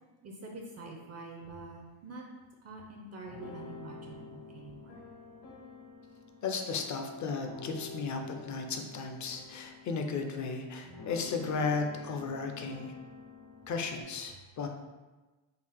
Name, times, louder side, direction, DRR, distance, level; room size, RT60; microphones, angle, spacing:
voice 1, 0.2-2.2 2.6-5.0, right 2 dB, 35° right, 0 dB, 0.4 m, -46 dB
sound 1, 3.2-14.0, left 3 dB, 70° left, 1.2 m, -48 dB
voice 2, 6.4-12.9 13.7-14.7, left 4 dB, 40° left, 4 dB, 0.5 m, -35 dB
3.8 x 2.4 x 3.4 m, 1.2 s
cardioid pair, 110°, 50 cm